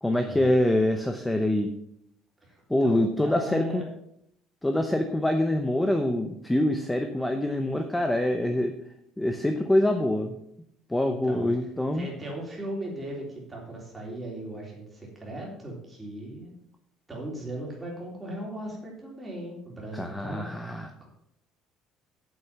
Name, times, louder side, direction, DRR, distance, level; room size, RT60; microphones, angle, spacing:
voice 1, 0.0-1.7 2.7-3.8 4.6-8.7 9.2-10.4 10.9-12.1 19.9-20.9, left 1 dB, 5° left, 6 dB, 0.7 m, -25 dB
voice 2, 2.4-3.8 11.0-11.5 11.9-16.5 17.1-20.5 21.0-21.1, right 1 dB, 10° right, -2 dB, 3.4 m, -38 dB
8.7 x 7.7 x 5.8 m, 0.74 s
cardioid pair, 140°, 0 cm